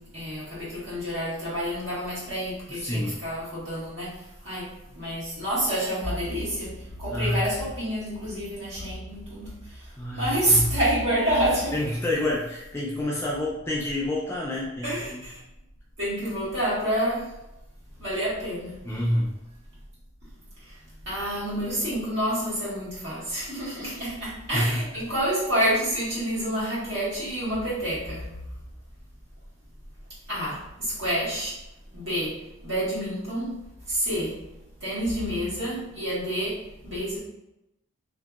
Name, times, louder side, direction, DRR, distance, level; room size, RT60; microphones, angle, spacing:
voice 1, 0.0-4.2 4.4-4.7 4.9-11.7 14.8-15.4 16.0-17.3 18.0-18.8 20.7-20.8 21.0-28.3 30.3-31.5 31.9-33.5 33.9-34.4 34.8-37.2, equal, 60° right, -9 dB, 1.5 m, -28 dB
voice 2, 2.7-3.2 7.1-7.4 10.0-10.7 11.7-15.2 18.8-19.3 24.5-24.9, left 1 dB, 10° left, -5 dB, 0.3 m, -28 dB
2.7 x 2.7 x 2.3 m, 0.89 s
head